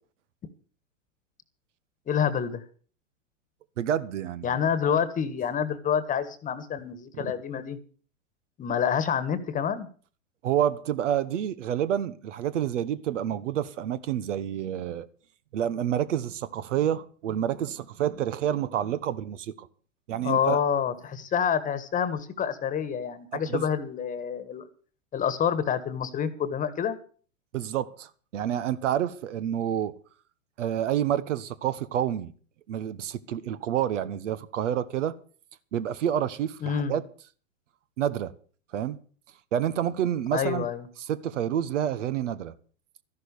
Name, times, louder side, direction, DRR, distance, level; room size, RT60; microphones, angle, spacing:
voice 1, 2.1-2.6 4.4-7.8 8.6-9.9 20.2-24.6 25.1-27.0 36.6-36.9 40.3-40.9, left 8 dB, 20° left, 1.5 m, -27 dB
voice 2, 3.8-4.5 7.1-7.3 10.4-15.1 15.5-19.7 20.1-20.6 23.3-23.7 27.5-29.9 30.6-32.3 32.7-35.1 35.7-37.0 38.0-38.3 38.7-39.0 39.5-40.7 41.0-42.5, right 10 dB, 70° right, 1.3 m, -28 dB
13.5 x 11.5 x 7.0 m
hypercardioid pair, 130°, 38 cm